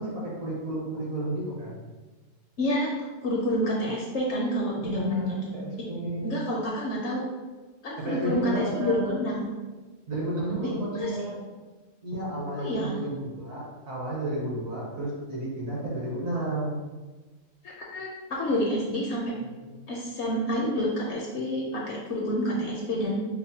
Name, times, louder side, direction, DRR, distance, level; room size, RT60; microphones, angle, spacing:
voice 1, 0.0-1.8 4.8-6.4 8.0-9.1 10.1-11.4 12.0-16.8 19.4-19.8, right 1 dB, 70° right, -5 dB, 1.5 m, -32 dB
voice 2, 2.6-2.9 3.2-5.5 6.2-7.3 7.8-9.5 11.0-11.1 12.6-12.9 17.6-19.3 19.9-23.2, equal, 65° left, -3 dB, 0.7 m, -28 dB
4.9 x 2.1 x 2.7 m, 1.3 s
omnidirectional pair, 1.5 m